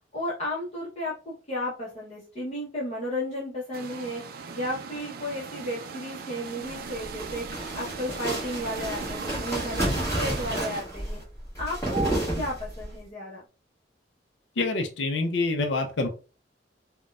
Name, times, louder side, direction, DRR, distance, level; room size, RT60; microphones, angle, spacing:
voice 1, 0.1-4.2 4.5-7.4 7.7-11.2 11.6-13.4, left 1 dB, 40° left, -6 dB, 0.8 m, -33 dB
sound 1, 3.7-10.8, right 5 dB, 55° right, 0.3 m, -39 dB
sound 2, 6.9-12.9, right 1 dB, 15° left, 1.2 m, -31 dB
voice 2, 14.6-16.1, left 3 dB, 80° left, 6 dB, 0.5 m, -26 dB
4.0 x 2.2 x 2.3 m, 0.34 s
head